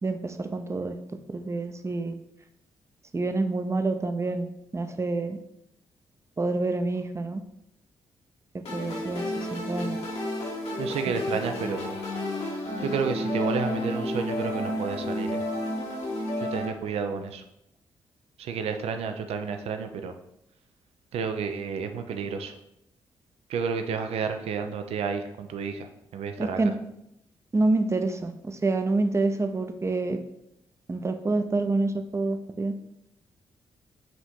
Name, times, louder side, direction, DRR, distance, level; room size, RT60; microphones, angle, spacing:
voice 1, 0.0-1.0 1.3-2.1 3.1-5.4 6.4-7.4 8.7-10.0 11.1-11.2 26.4-26.7 27.5-30.2 30.9-32.7, right 3 dB, 25° right, 8 dB, 0.5 m, -27 dB
sound 1, 8.7-16.7, left 1 dB, 75° left, 1.3 m, -31 dB
voice 2, 10.8-12.0 12.8-15.4 16.4-17.4 18.4-20.1 21.1-22.5 23.5-25.9 26.1-26.6, right 6 dB, 75° right, 7 dB, 0.5 m, -31 dB
5.1 x 2.6 x 3.6 m, 0.81 s
supercardioid pair, 50°, 11 cm